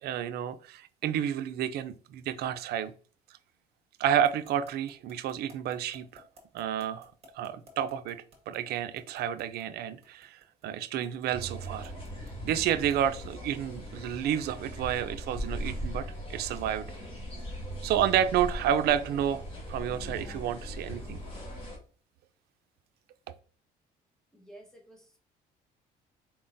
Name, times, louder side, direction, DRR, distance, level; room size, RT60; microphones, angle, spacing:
voice 1, 0.0-2.9 4.0-6.2 6.5-11.9 12.4-16.8 17.8-19.4 19.7-21.2, right 10 dB, 70° right, 11 dB, 0.5 m, -30 dB
sound 1, 4.2-13.1, right 1 dB, 35° right, 1.7 m, -55 dB
sound 2, 11.3-21.8, equal, 30° left, 1.7 m, -39 dB
voice 2, 24.3-25.2, right 1 dB, 5° left, 1 dB, 1.2 m, -52 dB
4.5 x 3.6 x 2.6 m, 0.40 s
cardioid pair, 110°, 17 cm